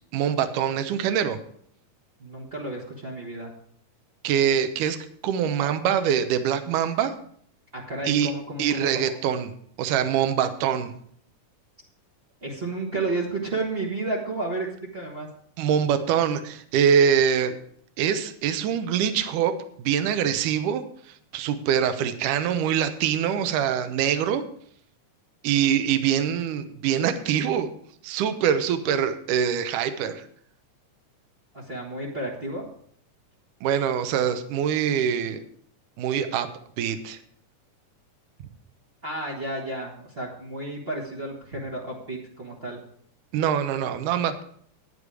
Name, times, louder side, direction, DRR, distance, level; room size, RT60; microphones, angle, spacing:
voice 1, 0.1-1.4 4.2-5.0 5.2-7.1 8.1-8.3 8.6-9.5 9.8-10.9 15.6-17.6 18.0-24.4 25.4-27.7 28.0-30.2 33.6-35.4 36.0-36.5 36.8-37.2 43.3-44.4, right 8 dB, 75° right, 10 dB, 2.3 m, -24 dB
voice 2, 2.2-3.5 7.7-9.1 12.4-15.3 31.5-32.7 39.0-42.8, right 2 dB, 45° right, -3 dB, 0.7 m, -32 dB
10.5 x 10.0 x 4.8 m, 0.62 s
omnidirectional pair, 3.8 m